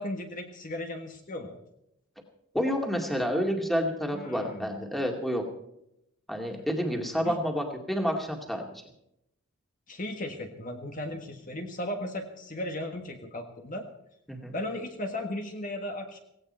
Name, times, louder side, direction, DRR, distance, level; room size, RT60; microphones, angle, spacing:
voice 1, 0.0-1.6 4.1-4.7 7.2-7.4 9.9-13.9 14.5-16.2, left 1 dB, 35° left, 4 dB, 1.5 m, -36 dB
voice 2, 2.5-5.4 6.3-8.6 14.3-14.5, equal, ahead, 2 dB, 2.2 m, -29 dB
17.0 x 17.0 x 4.4 m, 0.78 s
head